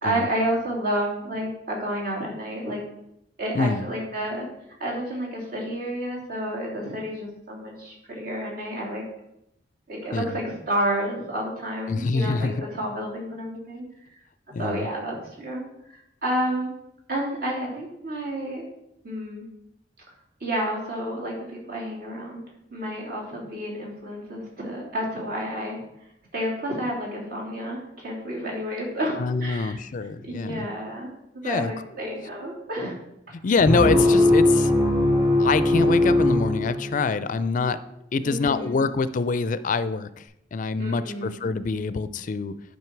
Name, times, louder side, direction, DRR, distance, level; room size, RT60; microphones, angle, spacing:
voice 1, 0.0-2.8 3.4-4.5 4.8-9.0 9.9-13.9 14.5-15.6 15.9-16.7 17.1-18.6 19.0-19.5 20.4-22.4 22.7-25.8 26.3-29.8 30.2-31.1 31.3-32.9 38.2-38.9 40.8-41.5, right 1 dB, 55° right, -3 dB, 3.0 m, -30 dB
voice 2, 11.9-12.5 14.5-14.8 29.2-30.7 31.4-31.7 33.4-34.7 35.4-37.8 38.1-42.5, left 4 dB, 45° left, 14 dB, 0.4 m, -25 dB
sound 1, 33.7-37.2, left 1 dB, 25° right, 3.5 m, -20 dB
11.0 x 5.3 x 4.5 m, 0.81 s
head